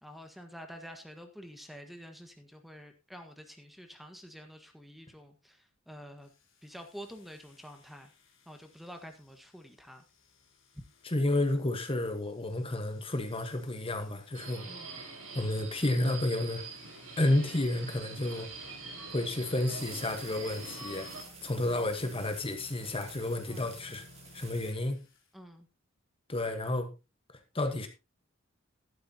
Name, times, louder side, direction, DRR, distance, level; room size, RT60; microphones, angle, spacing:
voice 1, 0.0-6.3 6.6-8.1 8.5-10.0 10.7-10.8 14.6-15.0 21.5-21.8 23.5-23.8 25.3-25.7, equal, ahead, 1.4 m, -48 dB
sound 1, 6.2-25.3, left 3 dB, 65° left, 3.9 m, -58 dB
voice 2, 11.0-14.7 15.3-16.6 17.2-18.5 19.1-21.1 21.4-24.0 24.3-25.0 26.3-26.9 27.5-27.9, left 1 dB, 25° left, 1.3 m, -31 dB
Subway metro underground, 14.3-21.2, right 4 dB, 90° right, 4.5 m, -44 dB
sound 2, 19.7-24.7, right 6 dB, 30° right, 2.2 m, -52 dB
13.0 x 12.0 x 2.9 m
head